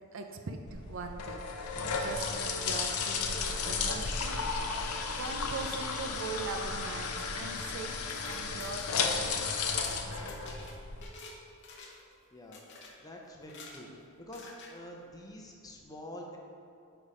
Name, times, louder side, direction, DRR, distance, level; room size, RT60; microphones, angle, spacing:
voice 1, 0.1-1.7 2.0-4.5 5.1-8.0 8.2-9.5 9.9-10.8, right 4 dB, 60° right, 5 dB, 0.5 m, -41 dB
sound 1, 0.7-11.0, left 4 dB, 75° left, 0.6 m, -34 dB
sound 2, 7.9-11.4 11.6-12.1 12.5-12.9 13.4-13.8 14.3-14.7, left 3 dB, 55° left, 0.8 m, -49 dB
voice 2, 12.3-12.7 13.0-13.9 14.2-16.4, equal, 15° left, 0 dB, 0.7 m, -46 dB
8.4 x 3.4 x 4.9 m, 2.5 s
head